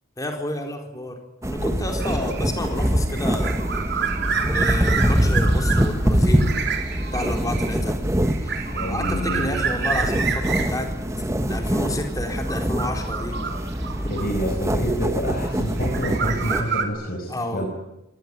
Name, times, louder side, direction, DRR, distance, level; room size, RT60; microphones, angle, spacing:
voice 1, 0.2-3.6 4.5-6.5 7.1-8.0 8.4-10.9 11.2-13.4 17.3-17.7, left 1 dB, 15° left, 4 dB, 4.4 m, -30 dB
sound 1, 1.4-16.6, equal, 15° right, 1.4 m, -24 dB
sound 2, 2.0-14.9 15.6-16.8, right 6 dB, 55° right, 3.8 m, -29 dB
voice 2, 8.7-9.6 14.1-17.7, equal, 45° left, 1 dB, 5.3 m, -28 dB
26.0 x 19.5 x 9.8 m, 0.88 s
head